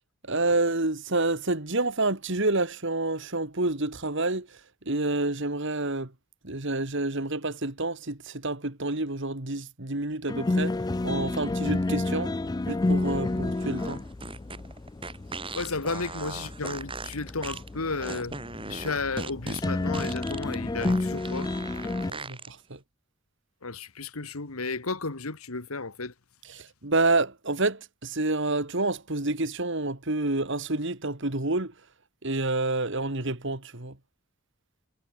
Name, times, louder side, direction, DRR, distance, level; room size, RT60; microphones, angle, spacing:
voice 1, 0.3-4.6 4.9-6.1 6.4-10.7 11.0-12.3 12.7-14.0 22.1-22.8 26.5-31.7 32.2-34.0, right 2 dB, 60° right, 2.4 m, -28 dB
sound 1, 10.3-22.1, left 2 dB, 20° left, 0.3 m, -31 dB
sound 2, 12.8-22.5, right 3 dB, 25° right, 6.0 m, -39 dB
voice 2, 15.5-18.4 18.7-21.5 23.6-26.1, left 3 dB, 90° left, 1.9 m, -33 dB
head